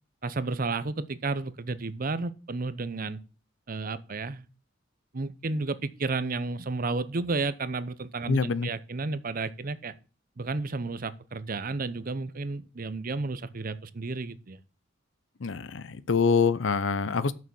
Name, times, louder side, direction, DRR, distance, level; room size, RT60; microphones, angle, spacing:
voice 1, 0.2-3.2 3.7-4.4 5.1-9.9 10.4-14.6, right 3 dB, 45° right, 0.7 m, -32 dB
voice 2, 8.3-8.7 15.4-17.3, left 5 dB, 75° left, 0.6 m, -25 dB
6.8 x 6.3 x 7.1 m
head